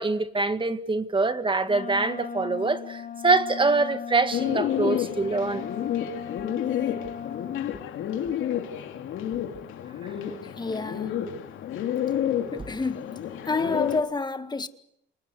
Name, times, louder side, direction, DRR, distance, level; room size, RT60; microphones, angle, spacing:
voice 1, 0.0-5.7, right 3 dB, 25° right, 1.9 m, -24 dB
Wind instrument woodwind instrument, 1.7-7.7, left 7 dB, 45° left, 1.8 m, -37 dB
Bird, 4.3-14.0, left 10 dB, 80° left, 3.2 m, -30 dB
voice 2, 10.4-11.2 12.5-13.2 13.5-14.7, left 3 dB, 20° left, 1.8 m, -29 dB
29.5 x 19.5 x 8.2 m
cardioid pair, 90°, 20 cm